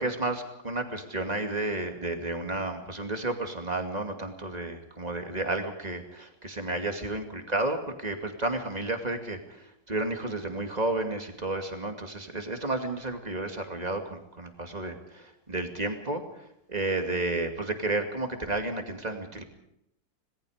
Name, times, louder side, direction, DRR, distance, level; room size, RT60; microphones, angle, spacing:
voice 1, 0.0-19.4, right 2 dB, 20° right, 5 dB, 2.5 m, -32 dB
27.0 x 19.0 x 5.1 m, 0.79 s
omnidirectional pair, 2.0 m